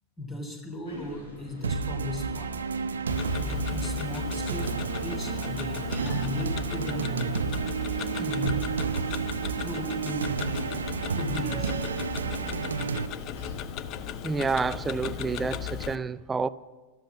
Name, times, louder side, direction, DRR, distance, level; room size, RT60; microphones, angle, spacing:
voice 1, 0.2-2.5 3.3-4.7 5.0-7.4 8.1-8.7 9.6-10.7 11.1-11.7, left 1 dB, 20° left, 3.3 m, -36 dB
sound 1, 0.8-15.7, left 1 dB, 70° left, 6.6 m, -44 dB
sound 2, 1.6-13.1, right 5 dB, 70° right, 0.6 m, -31 dB
Tick-tock, 3.1-16.0, left 10 dB, 40° left, 0.6 m, -37 dB
voice 2, 14.2-16.5, right 4 dB, 15° right, 0.4 m, -29 dB
13.5 x 13.0 x 7.3 m
figure-of-eight pair, 90°, 0 cm